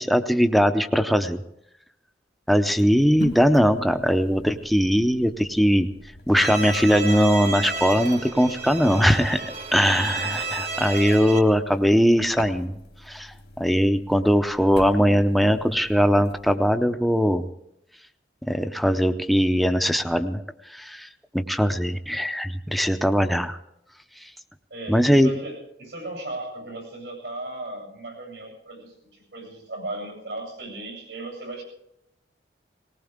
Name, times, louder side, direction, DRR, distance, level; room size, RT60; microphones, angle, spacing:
voice 1, 0.0-1.4 2.5-5.9 6.3-12.8 13.1-17.5 18.5-20.4 20.7-21.1 21.3-23.6 24.9-25.3, equal, ahead, 7 dB, 0.6 m, -20 dB
sound 1, 2.7-16.5, left 1 dB, 75° left, 1.8 m, -43 dB
Bowed string instrument, 6.4-11.4, right 3 dB, 40° right, 1.2 m, -31 dB
voice 2, 24.7-31.6, right 2 dB, 85° right, 2 dB, 7.9 m, -36 dB
19.5 x 19.0 x 3.6 m, 0.78 s
head